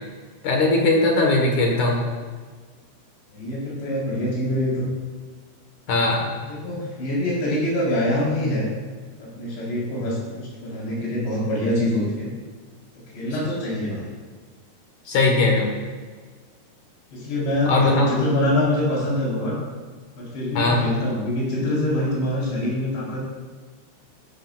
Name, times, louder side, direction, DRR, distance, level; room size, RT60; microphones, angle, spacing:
voice 1, 0.4-2.0 5.9-6.3 15.1-15.7 17.7-18.1 20.5-20.9, left 2 dB, 60° left, 0 dB, 2.3 m, -19 dB
voice 2, 3.3-4.9 6.5-8.7 9.2-12.3 13.1-14.1 17.1-19.6 20.2-23.2, left 1 dB, 85° left, -6 dB, 6.2 m, -24 dB
15.5 x 11.5 x 2.5 m, 1.5 s
omnidirectional pair, 4.9 m